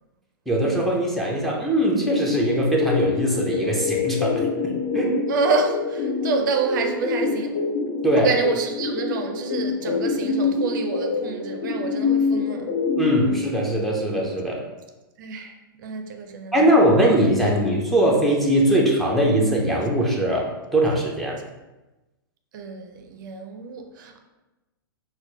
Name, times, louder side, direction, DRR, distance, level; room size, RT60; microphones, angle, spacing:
voice 1, 0.5-5.2 8.0-8.3 13.0-14.7 16.5-21.4, right 1 dB, ahead, 0.5 m, -21 dB
sound 1, 2.1-13.4, left 4 dB, 55° left, 0.8 m, -26 dB
voice 2, 5.3-7.6 8.2-12.7 15.2-16.6 22.5-24.2, right 5 dB, 60° right, 0.4 m, -28 dB
4.3 x 2.2 x 2.7 m
hypercardioid pair, 125°, 12 cm